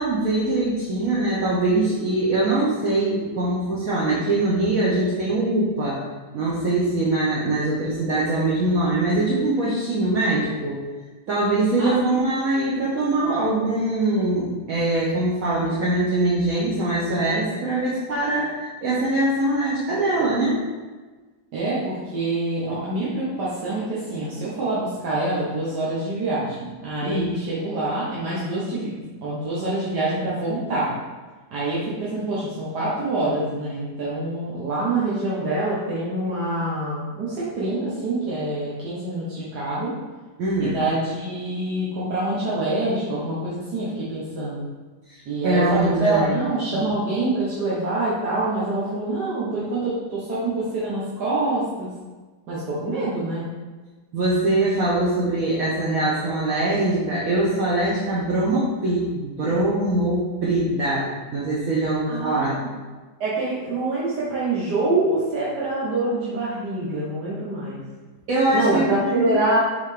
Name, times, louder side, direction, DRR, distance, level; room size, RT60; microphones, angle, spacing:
voice 1, 0.0-6.0 6.3-10.8 11.3-20.6 27.0-27.3 40.4-40.8 45.1-46.4 46.7-46.9 54.1-62.6 68.3-69.4, right 2 dB, 65° right, -6 dB, 1.3 m, -23 dB
voice 2, 11.8-12.3 21.5-28.9 29.2-30.9 31.5-39.9 40.6-44.6 45.3-51.9 52.5-53.4 62.1-62.7 63.2-67.8 68.5-69.6, right 2 dB, 85° right, -8 dB, 1.7 m, -26 dB
6.8 x 4.1 x 3.3 m, 1.3 s
omnidirectional pair, 1.7 m